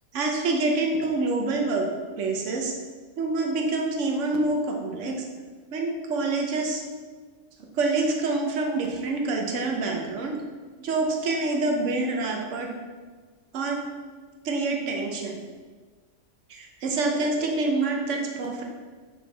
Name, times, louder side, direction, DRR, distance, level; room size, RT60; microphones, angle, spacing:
voice 1, 0.1-1.9 2.2-2.7 3.2-5.1 5.7-6.8 7.8-10.4 10.8-12.7 13.5-13.8 14.4-15.4 16.5-18.6, right 3 dB, 65° right, 1 dB, 1.2 m, -26 dB
7.4 x 4.5 x 3.5 m, 1.5 s
omnidirectional pair, 1.4 m